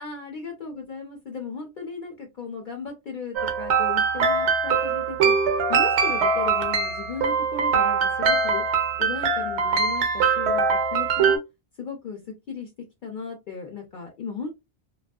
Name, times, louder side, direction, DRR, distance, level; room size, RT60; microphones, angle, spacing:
voice 1, 0.0-5.4 5.7-8.6 9.0-11.4 11.8-12.7 13.0-14.5, left 5 dB, 55° left, 1 dB, 0.6 m, -36 dB
sound 1, 3.4-11.4, right 5 dB, 75° right, 0.9 m, -22 dB
2.5 x 2.3 x 2.2 m, 0.22 s
omnidirectional pair, 1.2 m